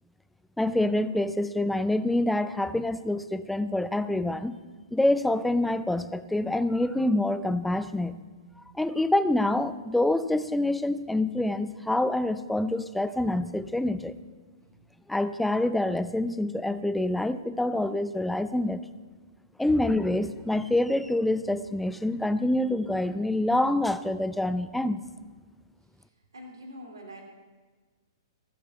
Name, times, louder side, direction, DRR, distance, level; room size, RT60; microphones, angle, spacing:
voice 1, 0.6-4.5 4.9-8.2 8.7-14.1 15.1-18.8 19.6-25.0, left 1 dB, 5° left, 13 dB, 0.5 m, -26 dB
voice 2, 26.3-27.2, equal, 70° right, 2 dB, 2.5 m, -43 dB
14.5 x 7.7 x 6.8 m, 1.4 s
figure-of-eight pair, 115°, 2 cm